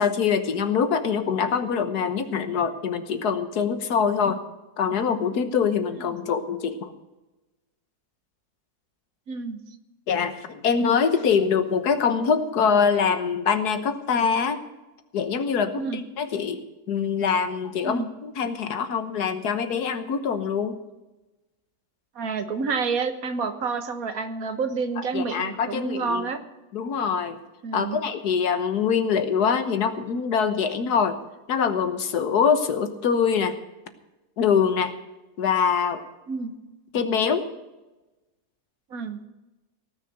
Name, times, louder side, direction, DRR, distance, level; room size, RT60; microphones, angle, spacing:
voice 1, 0.0-4.4 4.8-6.9 10.1-14.6 15.1-16.6 16.9-20.8 25.0-26.3 26.7-27.4 27.7-31.2 31.5-33.5 34.4-34.9 35.4-36.0 36.9-37.5, left 6 dB, 85° left, 9 dB, 1.7 m, -24 dB
voice 2, 9.3-9.6 15.8-16.1 17.8-18.1 22.1-26.4 27.6-28.0 36.3-36.6 38.9-39.2, right 4 dB, 65° right, 9 dB, 1.6 m, -29 dB
18.0 x 6.6 x 7.9 m, 1.1 s
omnidirectional pair, 1.6 m